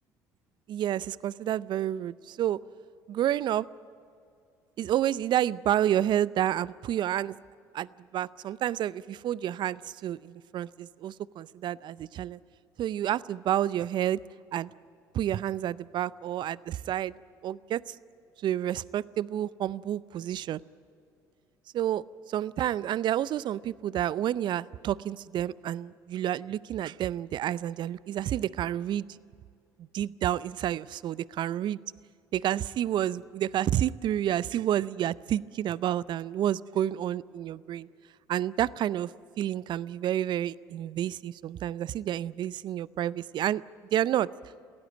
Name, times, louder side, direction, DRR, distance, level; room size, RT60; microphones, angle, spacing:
voice 1, 0.7-2.6 3.1-3.7 4.8-7.3 7.7-12.4 12.8-14.2 14.5-14.7 15.1-17.1 17.4-17.9 18.4-20.6 21.7-22.0 22.3-29.1 29.9-31.8 32.3-37.9 38.3-39.1 39.4-43.6 43.9-44.3, right 11 dB, 55° right, 20 dB, 0.5 m, -29 dB
24.0 x 17.0 x 8.9 m, 2.5 s
hypercardioid pair, 60°, 9 cm